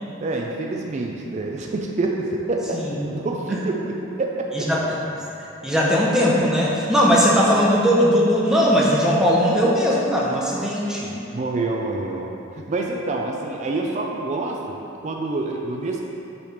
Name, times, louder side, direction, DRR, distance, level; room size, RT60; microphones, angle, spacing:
voice 1, 0.2-4.7 11.3-14.8 15.0-16.0, right 2 dB, 35° right, 0 dB, 0.4 m, -27 dB
voice 2, 5.6-11.1, equal, 5° right, -5 dB, 0.7 m, -19 dB
6.9 x 3.3 x 5.7 m, 2.9 s
head